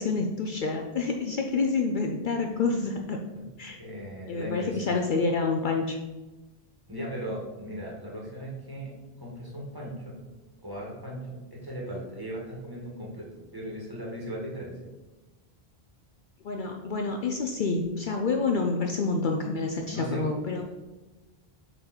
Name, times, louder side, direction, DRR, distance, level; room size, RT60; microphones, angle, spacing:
voice 1, 0.0-3.2 3.6-3.8 4.3-6.0 11.9-12.0 16.4-20.6, left 4 dB, 60° left, 3 dB, 0.7 m, -28 dB
voice 2, 3.8-4.8 6.9-10.2 10.6-14.8 19.9-20.3, right 1 dB, 20° right, -4 dB, 2.0 m, -38 dB
8.1 x 3.8 x 4.4 m, 1.2 s
omnidirectional pair, 1.0 m